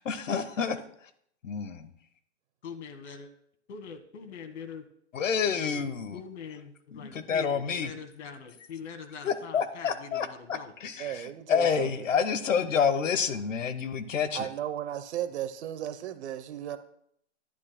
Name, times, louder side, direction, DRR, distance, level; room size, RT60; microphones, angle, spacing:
voice 1, 0.0-0.8 1.4-1.9 5.1-6.2 6.9-7.9 9.2-14.5, left 6 dB, 90° left, 1.1 m, -28 dB
voice 2, 2.6-3.3 3.7-4.8 5.5-5.9 6.1-10.7, left 6 dB, 65° left, 1.6 m, -43 dB
voice 3, 11.0-11.9 14.3-16.8, right 11 dB, 60° right, 1.0 m, -35 dB
11.5 x 10.5 x 2.2 m
hypercardioid pair, 140°, 37 cm